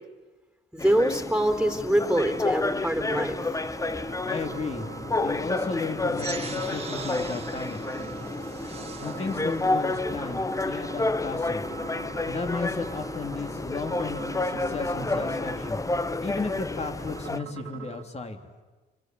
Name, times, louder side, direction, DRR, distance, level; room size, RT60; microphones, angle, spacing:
voice 1, 0.7-3.4, right 1 dB, 5° right, 7 dB, 3.8 m, -24 dB
sound 1, 0.8-17.4, left 2 dB, 15° left, 1.0 m, -30 dB
sound 2, 2.1-18.1, right 9 dB, 90° right, 2.7 m, -44 dB
voice 2, 4.2-7.8 9.0-11.7 12.3-15.8 16.2-18.4, left 3 dB, 35° left, 5 dB, 3.4 m, -34 dB
sound 3, 6.1-11.1, right 5 dB, 30° right, 2.3 m, -42 dB
26.5 x 25.5 x 7.9 m, 1.3 s
cardioid pair, 90°, 20 cm